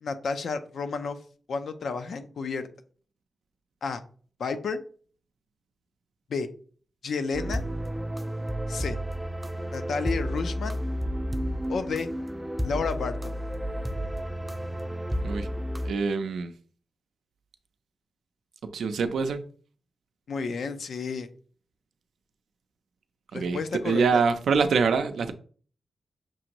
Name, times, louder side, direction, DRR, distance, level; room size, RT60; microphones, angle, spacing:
voice 1, 0.0-1.2 1.5-2.7 3.8-4.0 4.4-4.8 6.3-6.5 7.0-7.6 8.7-9.0 9.7-10.8 11.7-12.1 12.6-13.3 20.3-21.3 23.3-24.2, left 4 dB, 70° left, 0.5 m, -31 dB
sound 1, 7.3-15.9, equal, 10° right, 0.3 m, -31 dB
voice 2, 15.8-16.5 18.7-19.4 23.3-23.6 23.8-25.3, right 5 dB, 80° right, 0.5 m, -25 dB
6.0 x 2.6 x 2.9 m
wide cardioid pair, 105°, 0 cm